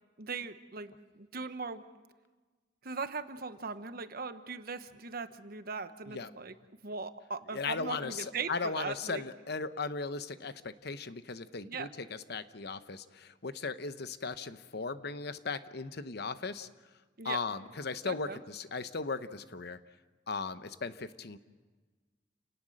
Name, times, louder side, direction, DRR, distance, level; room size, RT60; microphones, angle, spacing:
voice 1, 0.2-1.8 2.8-6.5 6.8-9.2 11.6-11.9 17.2-17.4 18.0-18.4, right 4 dB, 55° right, 10 dB, 1.1 m, -39 dB
voice 2, 7.5-16.7 17.2-19.8 20.3-21.4, left 4 dB, 60° left, 12 dB, 0.9 m, -37 dB
29.5 x 18.5 x 6.5 m, 1.3 s
head